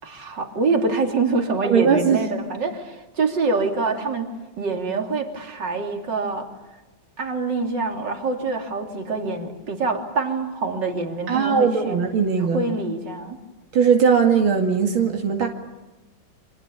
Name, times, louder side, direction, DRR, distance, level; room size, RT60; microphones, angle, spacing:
voice 1, 0.0-6.5 7.2-12.0 12.4-13.4, right 3 dB, 60° right, 3 dB, 3.7 m, -25 dB
voice 2, 1.6-2.3 11.3-12.6 13.7-15.5, right 6 dB, 85° right, 2 dB, 3.0 m, -19 dB
29.5 x 25.5 x 7.1 m, 1.1 s
omnidirectional pair, 2.2 m